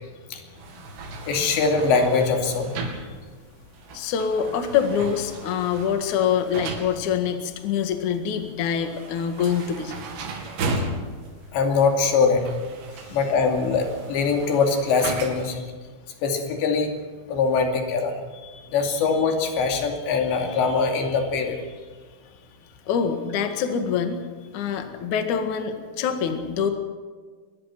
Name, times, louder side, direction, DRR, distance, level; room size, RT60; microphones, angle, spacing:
sound 1, 0.6-15.6, right 3 dB, 80° right, 4.8 m, -36 dB
voice 1, 1.3-2.7 11.5-12.4 13.1-15.6 16.2-16.9 17.3-18.2 18.4-21.6, left 4 dB, 90° left, 3 dB, 4.8 m, -22 dB
voice 2, 3.9-10.0 13.1-13.2 22.9-24.2 24.5-26.7, left 7 dB, 55° left, 6 dB, 2.8 m, -25 dB
24.0 x 21.0 x 6.1 m, 1.5 s
omnidirectional pair, 5.0 m